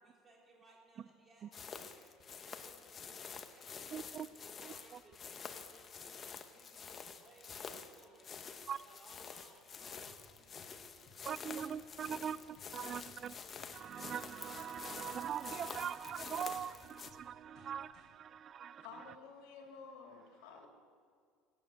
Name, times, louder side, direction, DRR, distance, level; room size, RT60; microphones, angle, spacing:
voice 1, 0.0-12.8, right 2 dB, 15° right, -2 dB, 3.8 m, -65 dB
sound 1, 1.5-17.1, left 6 dB, 25° left, 0.9 m, -49 dB
voice 2, 3.9-4.3 4.6-4.7 8.7-8.8 11.3-13.3 13.7-18.9, right 8 dB, 30° right, 18 dB, 0.3 m, -42 dB
sound 2, 10.1-18.1, left 3 dB, 45° left, 5.6 m, -64 dB
voice 3, 18.8-20.7, left 5 dB, 90° left, 1 dB, 3.2 m, -52 dB
17.0 x 8.7 x 9.2 m, 2.2 s
cardioid pair, 155°, 0 cm